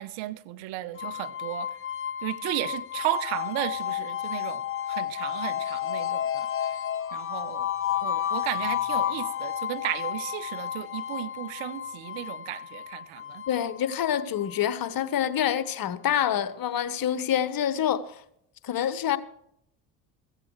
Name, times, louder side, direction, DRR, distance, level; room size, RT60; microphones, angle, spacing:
voice 1, 0.0-1.7 2.2-4.6 4.9-6.5 7.1-7.7 8.0-13.4, right 15 dB, 65° right, 1.0 m, -34 dB
sound 1, 1.0-15.9, left 10 dB, 25° left, 0.8 m, -32 dB
voice 2, 13.5-18.2 18.6-19.2, left 10 dB, 45° left, 1.2 m, -27 dB
15.5 x 14.5 x 3.2 m
hypercardioid pair, 60°, 49 cm